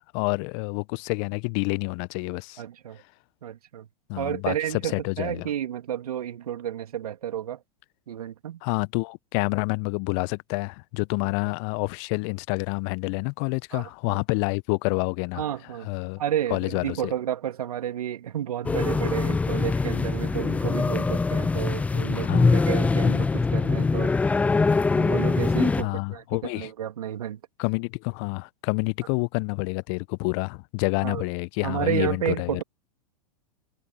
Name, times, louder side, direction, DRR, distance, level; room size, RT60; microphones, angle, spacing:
voice 1, 0.0-2.6 4.1-5.5 8.6-15.5 15.8-16.2 16.5-17.1 22.2-22.7 23.0-23.2 25.8-26.7 27.6-32.6, left 34 dB, 45° left, 0.9 m, -28 dB
voice 2, 2.6-3.0 3.4-3.9 4.2-7.6 8.1-8.6 13.7-14.2 15.4-24.1 24.9-27.4 31.0-31.2 31.6-32.6, right 10 dB, 70° right, 2.9 m, -31 dB
sound 1, 18.6-25.8, left 4 dB, 5° left, 0.3 m, -23 dB
figure-of-eight pair, 95°, 20 cm